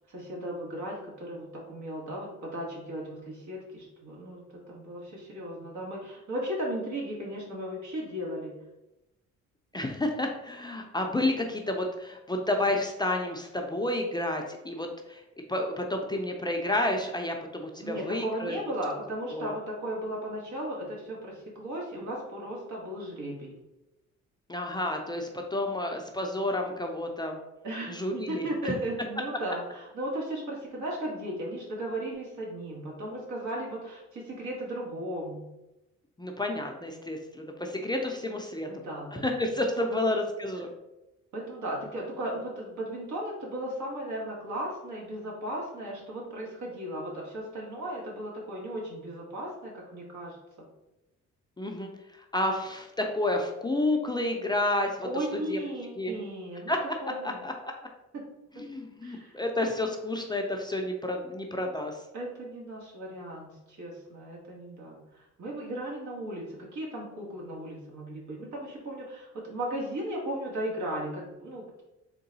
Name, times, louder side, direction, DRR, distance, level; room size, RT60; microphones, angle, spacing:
voice 1, 0.1-8.6 17.8-23.5 27.6-35.5 38.7-39.3 39.9-40.2 41.3-50.6 55.0-56.7 57.0-57.4 58.1-58.2 58.5-58.6 59.0-59.3 62.1-71.8, right 1 dB, 70° right, -3 dB, 1.5 m, -36 dB
voice 2, 9.7-15.2 15.5-18.6 19.3-19.5 24.5-27.4 27.9-28.7 36.2-38.7 39.1-40.7 51.6-51.9 52.3-55.1 55.5-55.6 56.0-56.1 56.7-56.8 57.2-57.7 58.6-62.0, left 1 dB, 15° left, 2 dB, 0.4 m, -30 dB
3.8 x 2.3 x 3.9 m, 0.95 s
cardioid pair, 90°, 30 cm